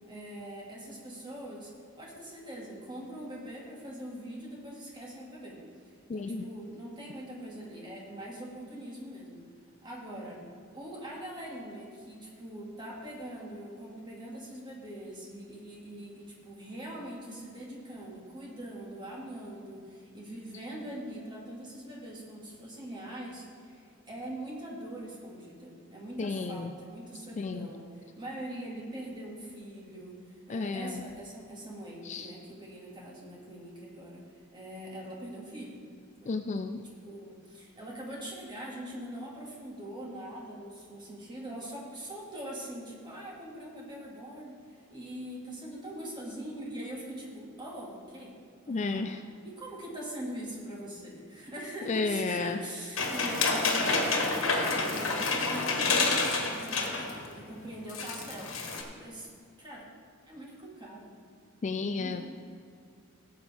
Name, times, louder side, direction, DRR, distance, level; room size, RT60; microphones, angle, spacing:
voice 1, 0.1-1.7 2.0-5.6 6.1-9.4 9.8-10.4 10.7-30.2 30.5-34.2 34.5-35.8 36.2-36.4 36.7-48.4 48.6-49.1 49.4-58.6 58.9-59.3 59.6-59.9 60.3-61.1 61.8-62.3, right 1 dB, 20° right, -3 dB, 2.1 m, -42 dB
voice 2, 6.1-6.4 26.2-26.7 27.4-27.7 30.5-31.0 32.0-32.3 36.3-36.8 48.7-49.2 51.9-52.6 61.6-62.3, left 4 dB, 35° left, 8 dB, 0.3 m, -32 dB
sound 1, 53.0-57.2 57.5-57.6 57.9-58.8, left 3 dB, 65° left, 1.5 m, -28 dB
17.0 x 7.9 x 3.5 m, 2.4 s
head